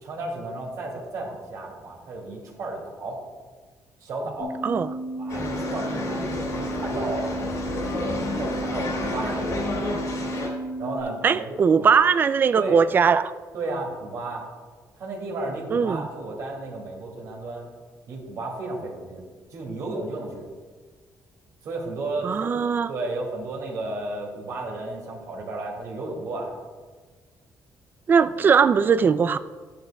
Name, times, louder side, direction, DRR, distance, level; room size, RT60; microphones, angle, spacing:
voice 1, 0.0-3.2 4.0-4.5 5.2-7.9 8.4-9.9 10.8-11.9 12.5-12.8 13.5-14.4 14.9-17.7 18.1-19.2 19.5-20.4 21.6-26.5, right 2 dB, 65° right, -1 dB, 2.5 m, -33 dB
sound 1, 4.4-11.0, right 2 dB, 85° left, 2.9 m, -33 dB
sound 2, 5.3-10.5, left 2 dB, 65° left, 2.8 m, -30 dB
voice 2, 11.2-13.3 15.7-16.1 22.2-22.9 28.1-29.4, right 6 dB, 30° right, 14 dB, 0.3 m, -20 dB
13.5 x 10.0 x 2.3 m, 1.4 s
cardioid pair, 145°, 6 cm